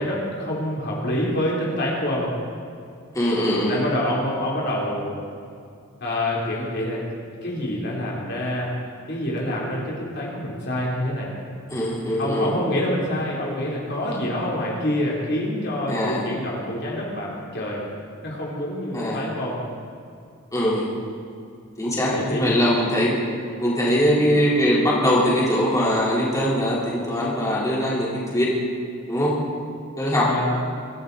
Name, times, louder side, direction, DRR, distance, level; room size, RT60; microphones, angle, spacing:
voice 1, 0.0-2.4 3.7-5.2 6.0-7.0 7.4-8.7 9.1-11.4 12.2-17.8 18.2-19.6 22.1-22.5 30.2-30.6, left 1 dB, 50° left, -4 dB, 3.5 m, -26 dB
voice 2, 3.1-3.8 11.7-12.5 15.9-16.3 18.9-19.2 20.5-20.9 21.8-23.2 23.6-28.5 29.1-29.3 30.0-30.3, equal, 15° left, -7 dB, 3.9 m, -21 dB
24.5 x 14.5 x 4.1 m, 2.4 s
head